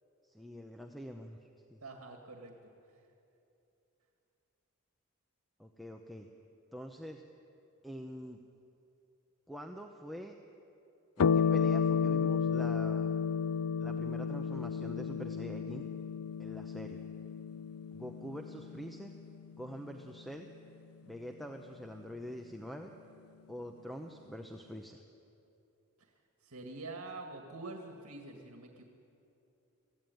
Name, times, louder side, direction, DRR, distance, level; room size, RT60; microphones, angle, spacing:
voice 1, 0.2-1.8 5.6-6.3 6.7-7.2 7.8-8.4 9.5-10.4 11.2-13.1 13.8-15.9 16.4-17.0 17.9-19.1 19.6-20.5 21.0-22.9 23.5-25.0, equal, ahead, 4 dB, 0.8 m, -45 dB
voice 2, 1.8-2.7 26.0-26.1 26.4-28.8, right 2 dB, 80° right, 3 dB, 1.9 m, -46 dB
sound 1, 11.2-20.1, left 6 dB, 90° left, 0.5 m, -32 dB
23.0 x 15.5 x 9.3 m, 2.8 s
head